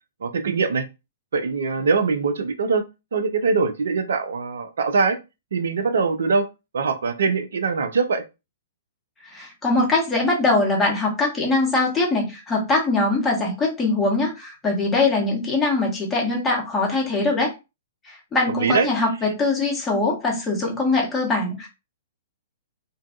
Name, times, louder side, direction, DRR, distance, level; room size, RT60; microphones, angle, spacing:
voice 1, 0.2-0.8 1.3-2.8 3.1-5.2 5.5-6.5 6.7-8.2 18.6-18.9, right 4 dB, 60° right, 8 dB, 0.4 m, -22 dB
voice 2, 9.3-17.5 18.0-21.7, left 3 dB, 15° left, -2 dB, 0.9 m, -22 dB
2.6 x 2.2 x 2.4 m, 0.26 s
figure-of-eight pair, 110°, 0 cm